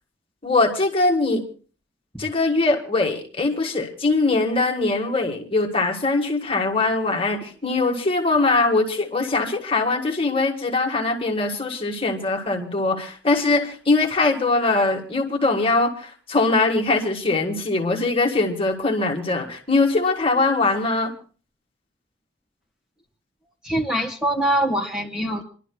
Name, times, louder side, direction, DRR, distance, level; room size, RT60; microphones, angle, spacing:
voice 1, 0.4-1.4 2.2-21.1, left 3 dB, 30° left, 1 dB, 1.7 m, -22 dB
voice 2, 23.6-25.4, right 1 dB, 5° right, -1 dB, 1.6 m, -23 dB
27.5 x 12.0 x 2.3 m, 0.39 s
head